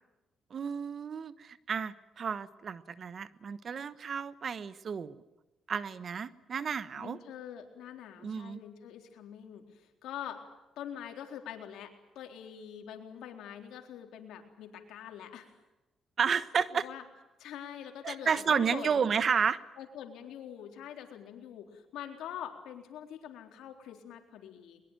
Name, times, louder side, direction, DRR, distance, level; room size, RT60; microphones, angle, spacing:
voice 1, 0.5-5.2 5.7-7.2 8.2-8.6 16.2-16.9 18.0-19.6, right 6 dB, 50° right, 14 dB, 1.2 m, -31 dB
voice 2, 7.0-10.4 10.8-15.5 16.7-17.0 17.4-19.1 19.8-24.8, left 9 dB, 85° left, 4 dB, 3.9 m, -44 dB
22.5 x 22.0 x 9.1 m, 1.0 s
cardioid pair, 90°, 0 cm